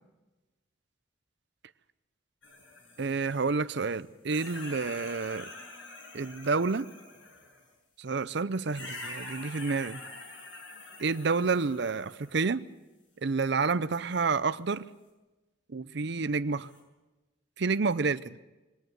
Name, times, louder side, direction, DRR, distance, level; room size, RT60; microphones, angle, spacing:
sound 1, 2.4-4.0 4.3-7.7 8.7-12.4 13.5-13.6 16.6-16.8, left 2 dB, 70° left, 7.5 m, -46 dB
voice 1, 3.0-5.5 6.1-6.9 8.0-10.0 11.0-12.7 13.2-14.8 15.7-16.7 17.6-18.4, right 4 dB, 60° right, 0.6 m, -29 dB
21.5 x 18.5 x 8.0 m
head